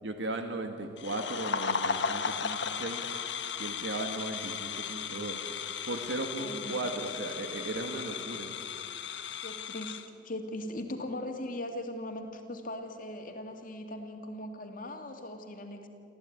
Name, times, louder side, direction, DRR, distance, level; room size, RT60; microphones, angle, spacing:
voice 1, 0.0-3.0 3.6-8.5, right 2 dB, 85° right, 5 dB, 1.7 m, -37 dB
sound 1, 1.0-10.1, left 6 dB, 80° left, 1.4 m, -36 dB
voice 2, 6.4-6.9 9.4-10.0 10.2-15.9, left 1 dB, 50° left, 4 dB, 2.5 m, -39 dB
24.5 x 15.0 x 9.6 m, 2.5 s
head